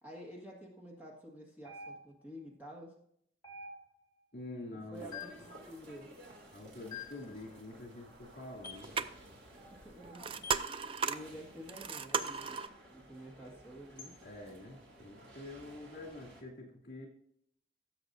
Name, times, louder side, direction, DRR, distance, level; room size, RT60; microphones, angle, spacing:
voice 1, 0.0-2.9 4.9-6.1 9.7-14.1, equal, 10° right, -2 dB, 1.6 m, -50 dB
sound 1, 1.7-2.3 3.4-4.1 5.1-5.5 6.9-7.3 8.6-8.9 10.4-10.7 12.2-12.4 14.0-14.2, left 5 dB, 25° left, 1.4 m, -47 dB
voice 2, 4.3-5.2 6.5-8.9 14.2-17.1, left 2 dB, 60° left, -1 dB, 2.7 m, -47 dB
sound 2, 4.9-16.4, right 1 dB, 75° right, 2.4 m, -56 dB
sound 3, 8.6-12.7, right 6 dB, 30° right, 0.3 m, -36 dB
15.5 x 6.9 x 2.6 m, 0.70 s
head